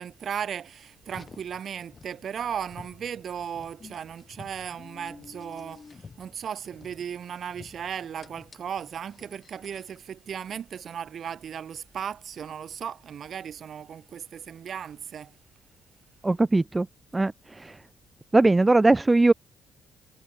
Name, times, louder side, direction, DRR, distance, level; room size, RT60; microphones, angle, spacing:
voice 1, 0.0-15.3, right 8 dB, 55° right, 2.7 m, -36 dB
Car, 1.0-10.0, left 4 dB, 35° left, 7.0 m, -50 dB
voice 2, 16.2-16.9 17.1-17.3 17.6-17.7 18.3-19.3, right 2 dB, 20° right, 0.5 m, -19 dB
cardioid pair, 90°, 0 cm